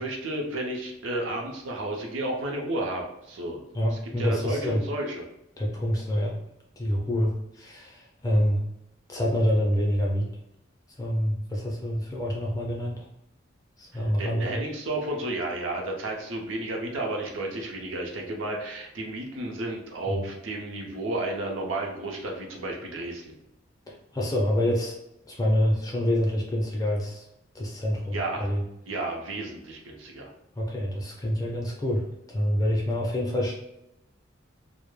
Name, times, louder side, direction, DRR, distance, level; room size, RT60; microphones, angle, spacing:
voice 1, 0.0-3.6 3.9-5.2 14.2-23.2 28.1-28.5 28.9-30.3, right 1 dB, 80° right, 1 dB, 0.6 m, -32 dB
voice 2, 3.7-4.8 5.6-6.3 6.8-8.6 9.1-10.3 11.0-13.1 13.8-14.6 20.1-20.2 24.1-25.0 25.3-27.3 27.5-28.6 30.6-33.5, equal, 20° left, -2 dB, 0.4 m, -26 dB
2.1 x 2.0 x 3.1 m, 0.83 s
head